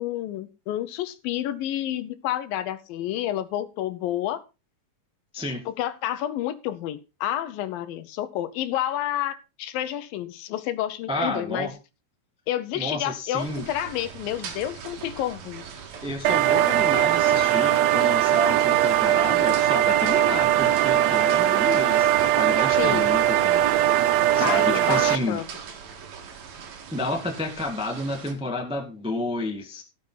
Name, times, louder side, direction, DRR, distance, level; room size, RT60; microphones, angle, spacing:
voice 1, 0.0-4.4 5.7-11.7 12.5-15.6 22.8-23.1 24.4-25.5, left 12 dB, 80° left, 12 dB, 2.7 m, -29 dB
voice 2, 5.3-5.6 11.1-11.7 12.7-13.7 16.0-23.6 24.3-25.4 26.9-29.8, left 2 dB, 5° right, 4 dB, 0.5 m, -30 dB
sound 1, 13.4-28.3, right 6 dB, 55° right, 2.7 m, -41 dB
sound 2, 16.2-25.2, right 12 dB, 90° right, 1.5 m, -20 dB
17.0 x 7.0 x 3.9 m, 0.29 s
omnidirectional pair, 4.1 m